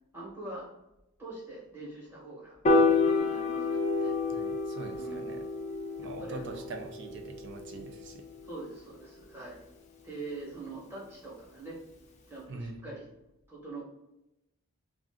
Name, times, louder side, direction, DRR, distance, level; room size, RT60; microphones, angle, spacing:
voice 1, 0.1-0.7 1.2-4.1 5.0-5.3 6.0-6.7 8.4-9.6 10.0-11.8 12.3-13.1 13.5-13.8, right 2 dB, 10° right, -6 dB, 1.1 m, -43 dB
Piano, 2.6-9.0, left 3 dB, 30° left, 0.4 m, -29 dB
voice 2, 4.3-5.4 6.0-8.2 12.5-12.9, right 2 dB, 55° right, 3 dB, 0.5 m, -43 dB
2.4 x 2.4 x 3.5 m, 0.89 s
head